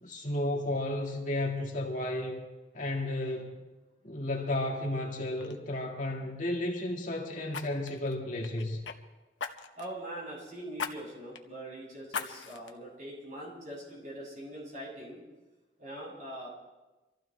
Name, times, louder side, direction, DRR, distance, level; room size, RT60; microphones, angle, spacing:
voice 1, 0.0-2.4 2.7-3.6 4.0-8.8, left 1 dB, 45° left, 0 dB, 2.0 m, -33 dB
Fire, 4.8-5.0 5.4-5.6 7.5-9.0 9.4-9.9 10.8-10.9 11.3-11.4 12.1-12.7 13.2-13.3, left 6 dB, 90° left, 1.0 m, -38 dB
voice 2, 9.7-15.2 15.8-16.5, right 1 dB, 40° right, -5 dB, 7.3 m, -42 dB
25.5 x 15.0 x 3.3 m, 1.1 s
head